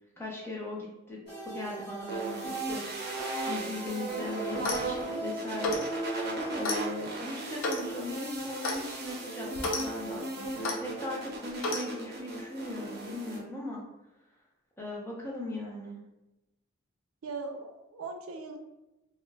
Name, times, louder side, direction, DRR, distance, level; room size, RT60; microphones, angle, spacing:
voice 1, 0.2-13.8 14.8-16.0, left 2 dB, 10° left, -4 dB, 0.5 m, -39 dB
sound 1, 1.3-6.9, right 2 dB, 40° left, 1.1 m, -39 dB
sound 2, 2.1-13.4, right 2 dB, 50° right, 0.6 m, -37 dB
Clock, 4.5-4.9 5.6-5.9 6.6-6.8 7.6-7.9 8.6-8.8 9.5-9.8 10.6-10.8 11.6-11.8, left 2 dB, 75° left, 0.5 m, -31 dB
voice 2, 17.2-18.6, right 3 dB, 90° right, 4 dB, 0.4 m, -39 dB
2.4 x 2.1 x 3.2 m, 0.96 s
head